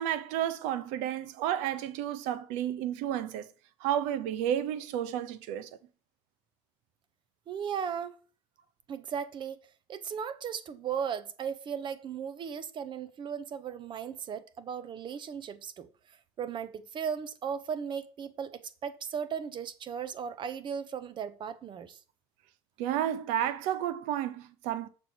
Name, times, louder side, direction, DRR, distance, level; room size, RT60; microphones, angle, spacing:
voice 1, 0.0-3.5 3.8-5.7 22.8-24.9, right 11 dB, 75° right, 0.8 m, -31 dB
voice 2, 7.5-8.1 8.9-9.6 9.9-15.9 16.4-22.0, right 7 dB, 40° right, 0.9 m, -36 dB
6.9 x 6.2 x 4.5 m
cardioid pair, 120°, 13 cm